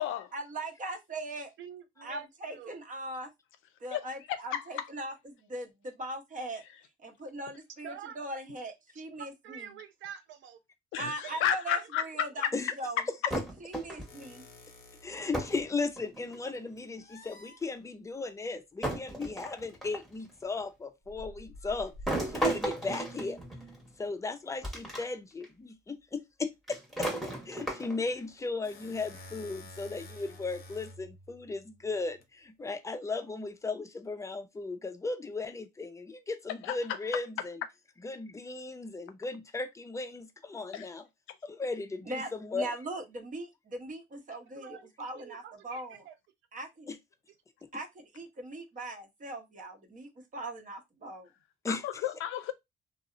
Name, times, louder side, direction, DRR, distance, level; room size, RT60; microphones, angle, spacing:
voice 1, 0.3-1.5 2.0-3.3 3.8-6.6 7.0-9.8 11.0-12.5 12.7-13.0 13.6-14.4 42.0-46.0 46.5-46.9 47.7-51.3, right 2 dB, 40° right, 0.8 m, -40 dB
voice 2, 1.6-2.3 2.5-2.8 7.8-8.2 9.4-10.6 44.6-46.2, right 9 dB, 75° right, 0.4 m, -47 dB
voice 3, 4.3-4.9 10.9-12.0 12.4-12.5 36.6-37.0 40.7-40.9 51.7-52.5, left 10 dB, 90° left, 0.4 m, -32 dB
sound 1, 13.3-14.3 15.3-15.7 16.0-16.6 17.6-17.7 18.8-20.1 22.1-23.9 24.6-25.0 25.4-25.5 26.7-28.1, right 1 dB, ahead, 1.0 m, -35 dB
sound 2, 14.1-15.7 17.0-17.6 19.6-19.8 21.0-22.6 28.1-32.3, left 1 dB, 50° left, 0.7 m, -50 dB
voice 4, 15.0-21.9 22.2-23.4 24.0-27.1 27.5-37.6 38.0-41.0 41.4-42.7 46.9-47.0 51.6-51.9, left 3 dB, 15° left, 0.4 m, -36 dB
2.7 x 2.0 x 2.4 m
cardioid pair, 90°, 20 cm